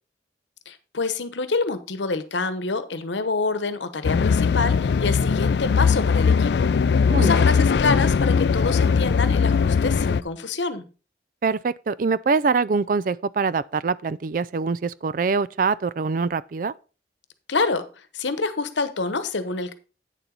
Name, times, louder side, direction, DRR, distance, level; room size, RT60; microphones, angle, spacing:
voice 1, 0.7-10.8 17.5-17.9 18.1-19.7, left 4 dB, 90° left, 1.0 m, -27 dB
sound 1, 4.0-10.2, left 5 dB, 70° left, 0.4 m, -20 dB
voice 2, 7.1-7.5 11.4-16.7, right 4 dB, 50° right, 0.3 m, -24 dB
9.0 x 7.0 x 3.9 m
head